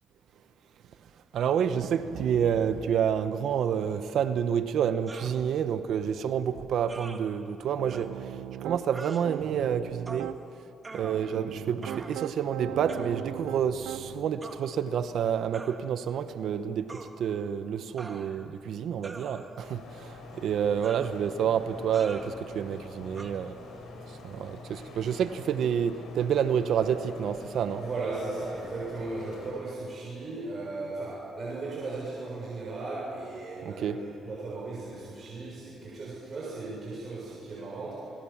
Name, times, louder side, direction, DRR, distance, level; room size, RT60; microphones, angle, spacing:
voice 1, 1.3-8.3 8.6-10.3 10.9-20.1 20.4-23.5 24.2-27.8 33.6-34.0, right 8 dB, 70° right, 11 dB, 1.1 m, -29 dB
sound 1, 5.1-5.4 6.9-7.2 7.9-8.0 8.9-9.2 10.1-10.3 10.8-11.5 11.8-12.3 12.9-13.1 14.4-14.6 15.5-15.8 16.9-17.1 18.0-18.5 19.0-19.7 20.8-21.2 21.9-22.3 23.1-23.3, right 3 dB, 25° right, 2.2 m, -44 dB
Piano, 7.8-8.8 9.2-10.4 11.0-14.3, right 12 dB, 90° right, 0.6 m, -38 dB
sound 2, 19.6-29.5, left 2 dB, 70° left, 6.9 m, -45 dB
voice 2, 27.8-38.1, right 3 dB, 45° right, -5 dB, 6.9 m, -36 dB
28.0 x 22.0 x 7.3 m, 2.6 s
cardioid pair, 90°, 0 cm